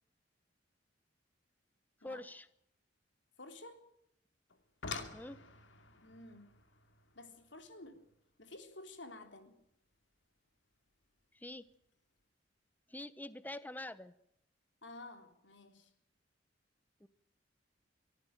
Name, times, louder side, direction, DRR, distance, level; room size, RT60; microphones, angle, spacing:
voice 1, 2.0-2.5 5.1-5.4 11.3-11.7 12.9-14.1 17.0-17.1, left 1 dB, 10° left, 15 dB, 1.0 m, -45 dB
voice 2, 3.4-3.8 6.0-6.5 7.2-8.1 8.4-9.5 14.8-15.9, left 2 dB, 70° left, 7 dB, 3.7 m, -52 dB
sound 1, 4.5-9.6 10.9-11.0 11.6-11.9 12.2-12.3, left 4 dB, 90° left, 2.6 m, -49 dB
24.0 x 14.0 x 9.2 m, 0.75 s
head